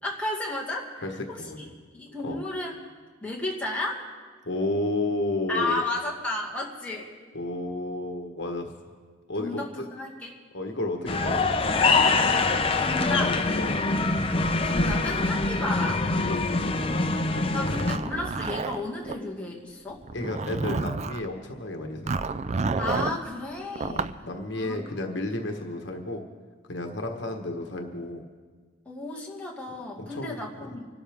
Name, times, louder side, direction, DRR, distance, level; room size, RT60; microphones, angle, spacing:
voice 1, 0.0-1.5 1.9-2.8 3.2-4.0 5.5-7.1 9.4-10.4 12.5-13.4 14.6-16.0 17.5-20.0 22.8-24.1 24.5-25.0 28.9-30.8, left 2 dB, 5° left, -4 dB, 2.1 m, -33 dB
voice 2, 1.4-1.7 2.2-2.4 4.4-5.8 7.3-8.7 9.3-9.8 10.5-11.8 13.5-13.8 16.3-17.0 17.5-17.9 20.1-22.1 23.8-26.2 26.7-28.2 30.0-30.4, left 2 dB, 60° left, 4 dB, 1.4 m, -32 dB
sound 1, 11.1-18.0, left 3 dB, 30° left, 0.7 m, -24 dB
Zipper (clothing), 17.7-19.2 20.0-21.3 22.1-23.2 23.8-24.2, right 4 dB, 35° right, 0.4 m, -30 dB
26.5 x 12.5 x 3.6 m, 1.5 s
head